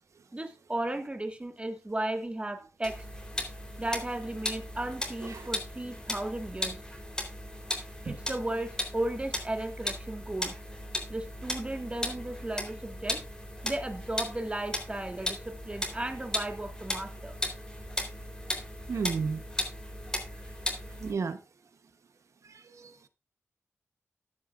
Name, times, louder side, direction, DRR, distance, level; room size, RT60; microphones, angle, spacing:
voice 1, 0.3-3.0 3.8-6.8 8.0-10.5 11.1-13.2 13.6-17.4, right 1 dB, 20° right, 1.7 m, -35 dB
sound 1, 2.8-21.1, left 1 dB, 15° left, 3.6 m, -37 dB
voice 2, 18.9-19.4 21.0-21.4 22.4-23.1, right 5 dB, 75° right, 1.0 m, -33 dB
14.0 x 9.9 x 2.5 m
wide cardioid pair, 75°, 5 cm